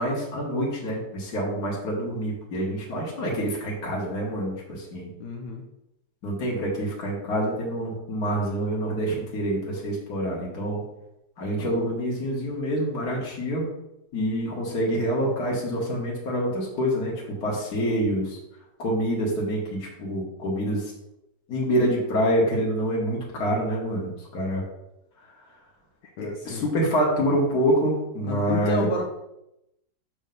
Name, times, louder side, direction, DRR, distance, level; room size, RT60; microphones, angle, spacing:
voice 1, 0.0-5.1 6.2-10.8 11.4-13.7 14.1-18.4 18.8-20.9 21.5-24.6 26.2-29.0, equal, 55° left, -4 dB, 1.9 m, -26 dB
voice 2, 5.2-5.6 26.2-26.7 28.2-29.0, left 6 dB, 70° left, 2 dB, 1.3 m, -31 dB
6.4 x 4.5 x 5.3 m, 0.87 s
omnidirectional pair, 2.1 m